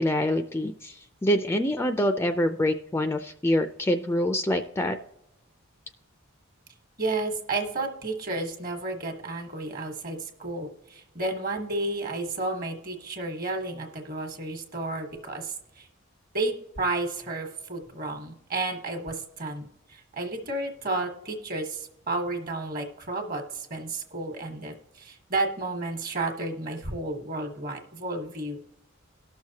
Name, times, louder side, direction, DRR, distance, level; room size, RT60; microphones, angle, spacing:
voice 1, 0.0-5.0, left 1 dB, 10° left, 8 dB, 0.3 m, -25 dB
voice 2, 7.0-15.9 16.3-28.6, right 2 dB, 45° right, 5 dB, 1.2 m, -32 dB
18.5 x 6.3 x 2.8 m, 0.87 s
head